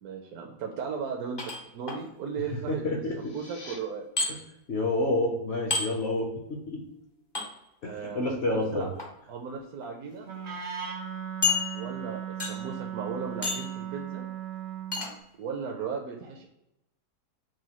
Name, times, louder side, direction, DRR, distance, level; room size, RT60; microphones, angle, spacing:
voice 1, 0.0-1.4 1.7-4.0 7.8-8.9 9.3-10.3 11.7-14.2 15.4-16.5, right 6 dB, 75° right, 1 dB, 1.0 m, -36 dB
sound 1, 1.4-2.0 4.2-4.3 5.7-5.9 7.3-7.5 8.8-9.1 9.8-9.9 10.3-10.4 11.4-12.0 12.4-12.7 13.4-13.8 14.9-15.1, left 4 dB, 35° left, 0.4 m, -29 dB
voice 2, 2.7-3.4 4.3-4.4 4.7-6.8 7.8-8.9, left 2 dB, 55° left, 0 dB, 0.7 m, -29 dB
sound 2, 3.0-3.8, left 2 dB, 80° left, 1.5 m, -47 dB
Wind instrument woodwind instrument, 10.2-15.1, right 9 dB, 55° right, 0.5 m, -37 dB
6.1 x 2.2 x 2.8 m, 0.86 s
omnidirectional pair, 1.7 m